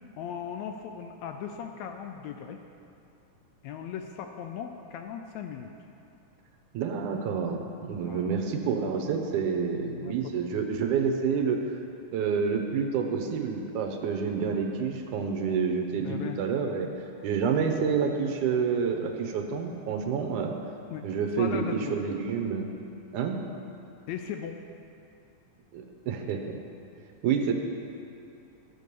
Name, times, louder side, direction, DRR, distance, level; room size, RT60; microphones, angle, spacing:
voice 1, 0.2-2.6 3.6-5.7 8.1-8.4 9.8-10.2 16.0-16.4 20.9-21.1 21.4-22.0 24.1-24.6, left 8 dB, 80° left, 5 dB, 1.7 m, -38 dB
voice 2, 6.7-11.6 12.1-16.9 17.2-20.5 21.0-22.7 23.1-23.4 25.7-26.6 27.2-27.5, right 6 dB, 80° right, 4 dB, 2.3 m, -28 dB
13.0 x 6.7 x 6.8 m, 2.6 s
omnidirectional pair, 3.5 m